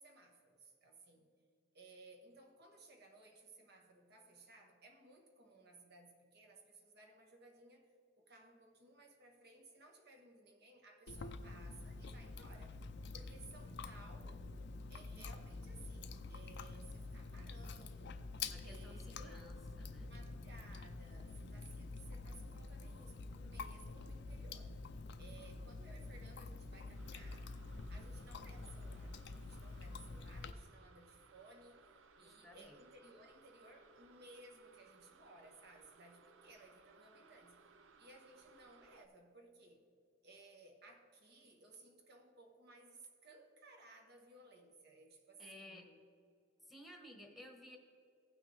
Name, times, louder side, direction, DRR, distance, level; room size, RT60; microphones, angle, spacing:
voice 1, 0.0-1.3 1.7-12.8 13.1-14.6 14.9-18.3 18.6-19.7 20.0-24.8 25.2-27.6 27.9-31.9 32.2-37.6 38.0-39.8 40.2-46.0, right 2 dB, 55° right, 1.3 m, -60 dB
Chewing mastication, 11.1-30.5, left 3 dB, 60° left, 0.5 m, -48 dB
voice 2, 18.5-20.1 32.2-32.8 45.4-45.9 46.7-47.8, left 1 dB, ahead, 1.2 m, -56 dB
sound 1, 26.9-39.1, right 5 dB, 70° right, 0.6 m, -65 dB
16.0 x 6.1 x 3.4 m
head